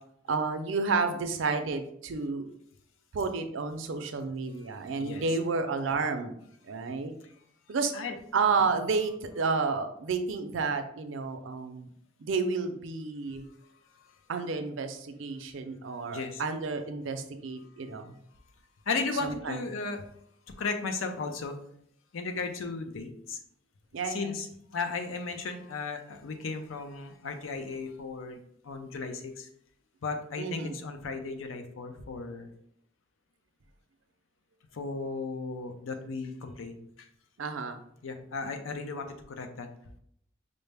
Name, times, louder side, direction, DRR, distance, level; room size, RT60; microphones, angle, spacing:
voice 1, 0.3-2.5 3.1-6.3 6.7-7.1 7.7-7.9 8.3-11.9 12.2-13.5 14.3-18.1 19.2-19.6 23.9-24.3 30.4-30.8 37.4-37.8, right 4 dB, 70° right, 7 dB, 0.5 m, -31 dB
voice 2, 5.0-5.4 5.9-6.0 7.9-8.1 16.1-16.4 18.9-20.1 20.6-21.6 22.1-23.4 24.0-24.5 24.7-29.5 30.0-32.5 34.7-37.1 38.0-39.7, left 4 dB, 85° left, 6 dB, 0.5 m, -35 dB
5.3 x 2.1 x 3.3 m, 0.71 s
head